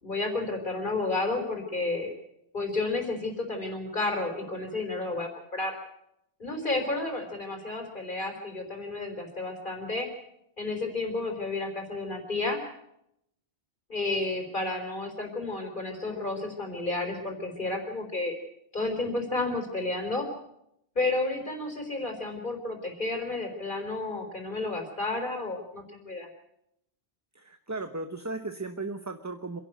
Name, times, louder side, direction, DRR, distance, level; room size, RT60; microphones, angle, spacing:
voice 1, 0.0-2.1 2.5-5.8 6.4-10.1 10.6-12.6 13.9-18.3 18.7-20.3 21.0-26.3, left 2 dB, 50° left, 3 dB, 4.1 m, -31 dB
voice 2, 27.3-29.6, right 3 dB, 15° right, 7 dB, 1.0 m, -36 dB
26.5 x 11.5 x 9.2 m, 0.81 s
omnidirectional pair, 1.1 m